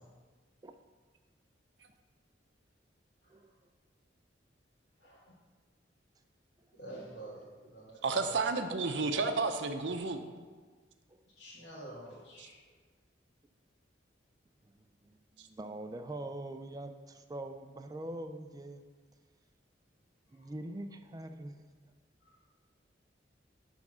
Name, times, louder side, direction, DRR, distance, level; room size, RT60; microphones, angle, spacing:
voice 1, 5.0-5.3 6.8-8.0 8.2-8.4 11.3-12.6 20.3-20.6 22.2-22.4, right 1 dB, 75° left, -8 dB, 1.6 m, -49 dB
voice 2, 8.0-10.2 12.4-12.5 15.4-15.5, right 4 dB, 75° right, 7 dB, 0.7 m, -32 dB
voice 3, 14.6-18.9 20.3-21.7, right 1 dB, 20° right, 7 dB, 0.4 m, -44 dB
10.5 x 3.5 x 6.2 m, 1.4 s
head